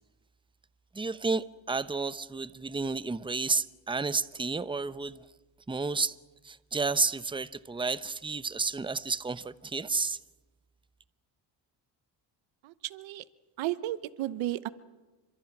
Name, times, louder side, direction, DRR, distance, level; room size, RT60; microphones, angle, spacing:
voice 1, 0.9-5.3 5.7-6.2 6.4-10.2, right 4 dB, 10° right, 0.8 m, -31 dB
voice 2, 12.6-13.2 13.6-14.7, right 15 dB, 90° right, 1.0 m, -33 dB
29.0 x 25.0 x 6.1 m
cardioid pair, 90°, 45 cm